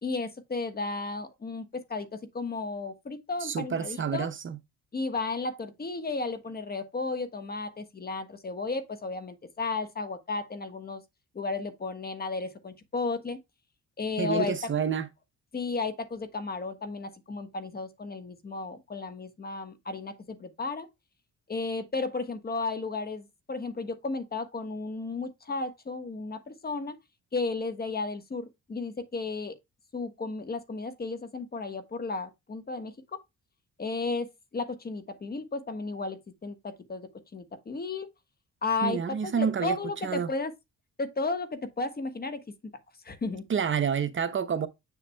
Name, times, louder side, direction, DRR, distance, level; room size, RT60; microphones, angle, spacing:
voice 1, 0.0-4.3 4.9-11.0 11.3-13.4 14.0-14.5 15.5-20.9 21.5-27.0 27.3-29.5 29.9-33.2 33.8-38.1 38.6-40.5 41.0-42.4 43.0-43.4, left 3 dB, 30° left, 1.3 m, -34 dB
voice 2, 3.4-4.6 14.2-15.1 38.8-39.8 40.0-40.3 43.5-44.7, right 7 dB, 40° right, 0.8 m, -28 dB
7.1 x 7.0 x 2.2 m
cardioid pair, 90°, 30 cm